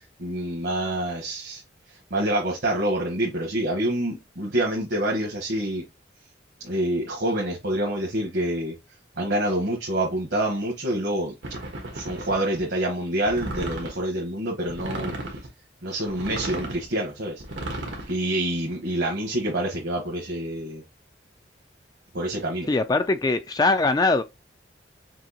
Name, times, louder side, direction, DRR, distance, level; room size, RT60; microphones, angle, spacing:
voice 1, 0.2-1.6 1.9-5.8 6.6-8.7 9.2-11.3 11.9-15.1 15.8-17.4 18.1-20.8 22.1-22.7, right 1 dB, 70° right, 1.3 m, -27 dB
sound 1, 11.4-12.6 13.3-14.0 14.7-15.5 16.1-16.9 17.4-18.1, right 1 dB, 90° right, 1.5 m, -34 dB
voice 2, 22.7-24.2, left 3 dB, 20° left, 0.3 m, -21 dB
6.1 x 2.8 x 2.9 m
head